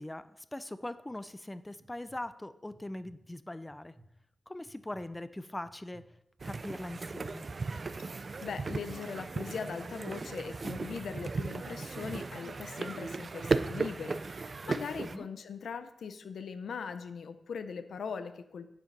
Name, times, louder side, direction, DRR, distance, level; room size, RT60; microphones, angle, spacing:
voice 1, 0.0-3.9 4.5-6.0 6.4-7.5 15.0-15.3, left 1 dB, 15° left, 13 dB, 0.5 m, -41 dB
sound 1, 0.8-1.2 1.7-2.2 2.7-3.2 3.7-4.1 4.6-5.1 5.6-6.1 6.6-7.0 7.7-8.1 8.7-9.1 9.7-10.1 10.7-11.1 11.7-12.1, right 2 dB, 15° right, 1.8 m, -58 dB
sound 2, 6.4-15.2, right 4 dB, 45° right, 0.5 m, -36 dB
voice 2, 8.4-18.7, left 6 dB, 90° left, 10 dB, 0.6 m, -40 dB
9.1 x 7.3 x 5.3 m, 0.79 s
wide cardioid pair, 105°, 0 cm